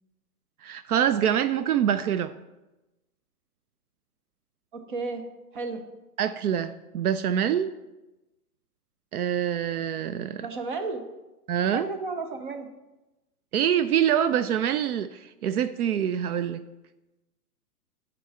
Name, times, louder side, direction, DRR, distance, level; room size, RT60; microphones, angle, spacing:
voice 1, 0.6-2.3 6.2-7.7 9.1-10.5 11.5-11.9 13.5-16.6, right 9 dB, 70° right, 13 dB, 0.5 m, -25 dB
voice 2, 4.7-5.2 5.5-5.8 10.4-11.1 11.6-12.7, right 3 dB, 35° right, 6 dB, 0.7 m, -33 dB
9.0 x 5.3 x 4.4 m, 1.0 s
hypercardioid pair, 170°, 46 cm